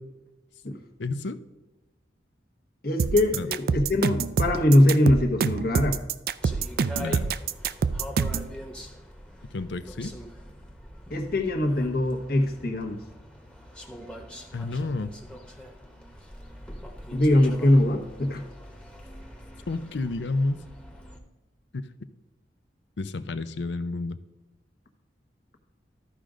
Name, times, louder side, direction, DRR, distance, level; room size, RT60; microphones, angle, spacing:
voice 1, 1.0-1.4 3.3-3.5 7.0-7.3 9.5-10.1 14.5-15.1 19.7-20.6 21.7-21.9 23.0-24.2, left 3 dB, 85° left, 12 dB, 0.6 m, -30 dB
voice 2, 2.8-6.0 11.1-13.0 17.1-18.4, left 1 dB, 60° left, 4 dB, 1.2 m, -22 dB
sound 1, 3.0-8.5, right 5 dB, 55° right, 0.4 m, -26 dB
sound 2, 6.4-21.2, equal, 5° left, 1.0 m, -43 dB
13.5 x 5.0 x 3.8 m, 1.1 s
head